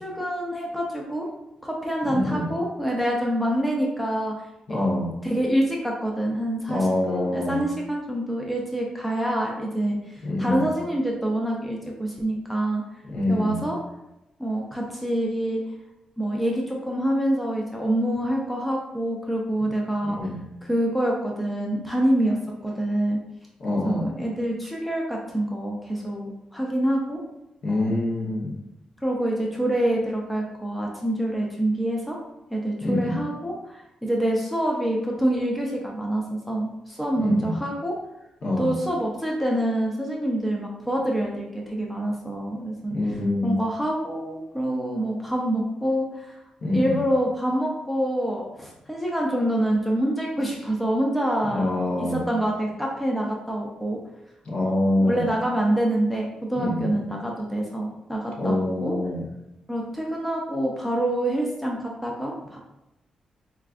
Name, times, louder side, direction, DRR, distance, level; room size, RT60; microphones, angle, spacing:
voice 1, 0.0-1.3 1.6-4.3 4.7-4.8 5.2-12.8 13.3-13.8 14.4-15.6 16.2-20.2 20.6-22.4 22.6-23.2 23.8-27.2 27.7-28.0 29.0-32.2 32.5-37.9 38.6-43.0 43.4-46.4 46.7-51.7 52.0-54.0 55.0-58.9 59.7-62.6, right 1 dB, ahead, -2 dB, 0.5 m, -26 dB
voice 2, 2.1-2.4 4.7-5.1 6.7-7.6 10.2-10.6 13.1-13.6 20.0-20.4 23.6-24.1 27.6-28.5 32.8-33.2 37.2-37.6 38.4-38.7 42.9-43.5 46.6-47.0 51.5-52.2 54.5-55.3 56.6-57.0 58.4-59.2, left 1 dB, 50° left, -2 dB, 0.8 m, -25 dB
4.5 x 2.4 x 2.4 m, 0.89 s
wide cardioid pair, 150°, 2 cm